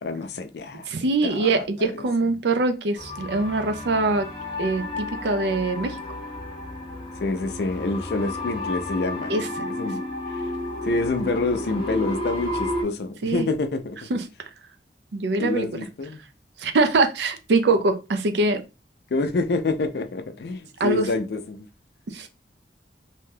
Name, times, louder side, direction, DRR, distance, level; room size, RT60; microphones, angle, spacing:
voice 1, 0.0-0.9 1.2-2.0 7.2-9.4 9.7-10.0 10.8-14.0 15.4-16.2 19.1-21.6, left 3 dB, 65° left, 0.4 m, -27 dB
voice 2, 0.9-4.3 4.6-6.0 9.3-9.7 13.2-13.5 14.1-14.2 15.1-15.7 16.6-18.6 20.8-21.1 22.1-22.3, right 3 dB, 75° right, 0.5 m, -23 dB
sound 1, 3.0-12.8, left 1 dB, 30° left, 0.7 m, -32 dB
2.7 x 2.2 x 3.3 m
head